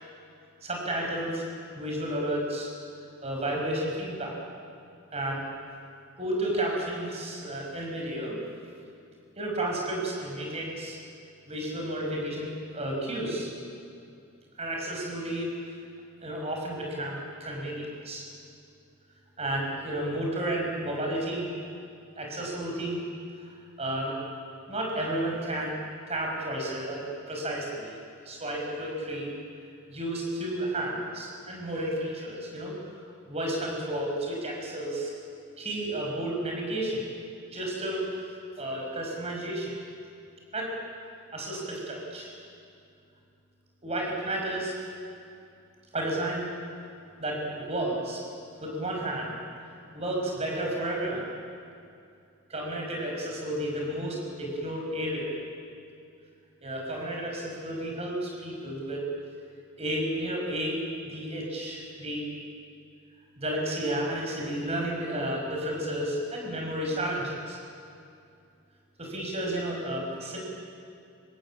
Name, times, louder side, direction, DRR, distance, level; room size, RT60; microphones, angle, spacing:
voice 1, 0.6-1.4 1.8-2.7 3.2-4.4 5.1-5.4 6.2-8.4 9.4-11.0 11.5-13.5 14.6-15.5 16.2-18.3 19.4-21.5 22.2-23.0 23.4-23.5 23.8-24.1 24.7-25.8 26.1-28.0 28.3-29.3 29.9-32.9 33.2-35.1 35.6-37.0 37.5-38.3 38.6-39.7 40.5-40.7 41.3-42.3 43.8-44.7 45.9-46.5 47.2-48.2 48.6-49.3 49.9-51.2 52.5-55.3 56.6-59.1 59.8-62.4 63.4-67.6 69.0-70.4, right 1 dB, 30° right, -1 dB, 5.6 m, -32 dB
26.0 x 24.5 x 7.5 m, 2.5 s
head